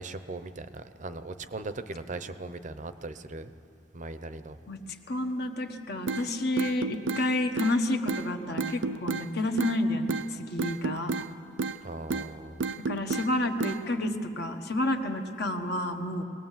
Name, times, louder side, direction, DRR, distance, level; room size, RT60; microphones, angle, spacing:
voice 1, 0.0-3.5 3.9-4.6 11.8-12.6, right 2 dB, 40° right, 11 dB, 0.7 m, -39 dB
voice 2, 5.1-11.1 12.9-16.2, left 1 dB, 55° left, 4 dB, 1.3 m, -30 dB
sound 1, 6.1-6.2 6.6-7.2 7.6-7.7 8.1-8.2 8.6-9.2 9.6-9.8 10.1-10.2 10.6-11.3 11.6-11.8 12.1-12.3 12.6-13.3 13.6-13.8, right 4 dB, 75° right, 0.6 m, -30 dB
22.0 x 19.0 x 7.5 m, 2.4 s
head